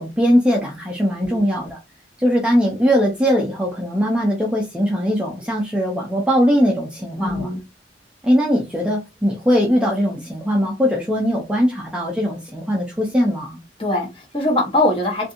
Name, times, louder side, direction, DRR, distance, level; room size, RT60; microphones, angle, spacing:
voice 1, 0.0-1.8 2.2-7.5 8.2-13.6, equal, 5° right, -2 dB, 0.4 m, -20 dB
voice 2, 7.2-7.6 13.8-15.3, left 1 dB, 30° left, -2 dB, 1.1 m, -22 dB
2.6 x 2.5 x 2.5 m, 0.26 s
head